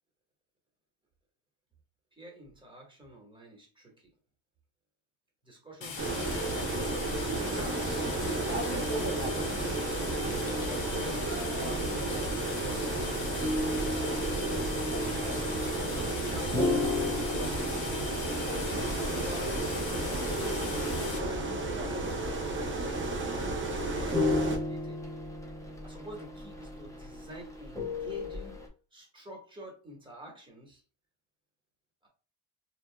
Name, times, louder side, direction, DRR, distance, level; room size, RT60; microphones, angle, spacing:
voice 1, 2.2-4.1 5.4-6.7 7.2-8.1 8.6-9.6 10.3-13.0 13.7-14.5 15.3-18.3 18.9-19.7 21.0-25.0 25.8-28.6 28.9-30.8 32.0-32.1, equal, 10° right, -1 dB, 1.3 m, -47 dB
sound 1, 5.8-21.2, left 5 dB, 85° left, 0.8 m, -40 dB
sound 2, 6.0-24.6, right 2 dB, 25° right, 0.8 m, -32 dB
sound 3, 13.4-28.7, left 2 dB, 5° left, 0.7 m, -36 dB
2.8 x 2.7 x 2.2 m, 0.38 s
cardioid pair, 110°, 45 cm